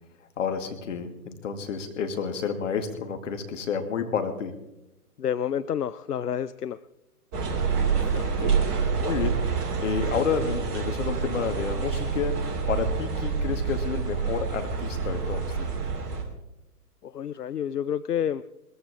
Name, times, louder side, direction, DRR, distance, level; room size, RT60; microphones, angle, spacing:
voice 1, 0.4-4.5 8.0-9.5 9.8-15.7, left 6 dB, 50° left, 7 dB, 2.3 m, -30 dB
voice 2, 5.2-6.8 17.0-18.4, left 9 dB, 80° left, 15 dB, 0.6 m, -29 dB
sound 1, 7.3-16.2, right 5 dB, 25° right, 2.7 m, -27 dB
20.0 x 15.0 x 3.6 m, 0.93 s
figure-of-eight pair, 125°, 47 cm